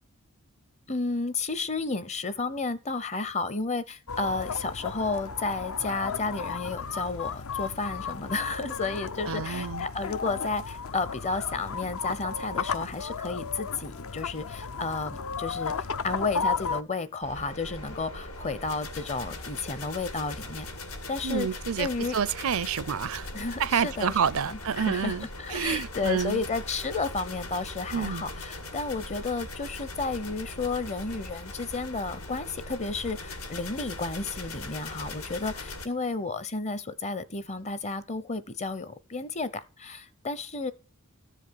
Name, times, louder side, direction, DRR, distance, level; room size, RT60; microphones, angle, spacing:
voice 1, 0.9-20.7 21.1-21.5 21.8-22.2 23.3-24.2 24.5-40.7, left 3 dB, 30° left, 0.7 m, -32 dB
sound 1, 4.1-16.8, left 5 dB, 70° left, 0.7 m, -34 dB
voice 2, 9.3-9.9 21.2-23.3 23.6-26.4 27.9-28.2, right 7 dB, 65° right, 0.5 m, -29 dB
sound 2, 17.2-35.9, left 2 dB, 85° left, 2.1 m, -40 dB
14.0 x 5.0 x 8.5 m
head